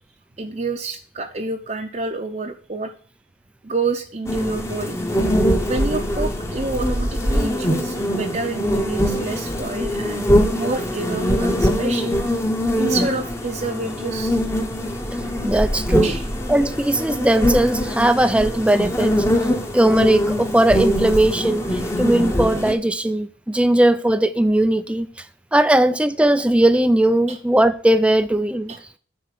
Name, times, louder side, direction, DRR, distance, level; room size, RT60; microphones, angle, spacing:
voice 1, 0.4-2.9 3.6-5.0 5.6-12.3 12.8-14.4 16.0-16.2 27.3-27.4 28.7-28.8, right 3 dB, 35° right, 0.7 m, -28 dB
sound 1, 4.3-22.7, equal, 15° left, 1.0 m, -22 dB
voice 2, 15.4-16.1 16.5-19.1 19.7-25.1 25.5-28.7, right 1 dB, 5° right, 0.4 m, -18 dB
9.5 x 4.5 x 6.7 m
head